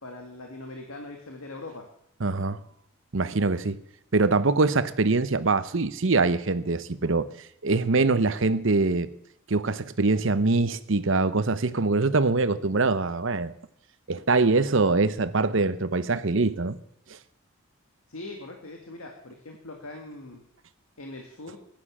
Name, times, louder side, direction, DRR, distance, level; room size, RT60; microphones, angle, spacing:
voice 1, 0.0-1.9 18.1-20.4 21.0-21.6, left 2 dB, 85° left, 3 dB, 1.9 m, -41 dB
voice 2, 2.2-2.6 3.1-3.8 4.1-7.3 7.6-9.1 9.5-13.5 14.1-16.8 17.1-17.2, right 3 dB, 65° right, 14 dB, 0.8 m, -23 dB
15.0 x 10.5 x 7.4 m, 0.72 s
head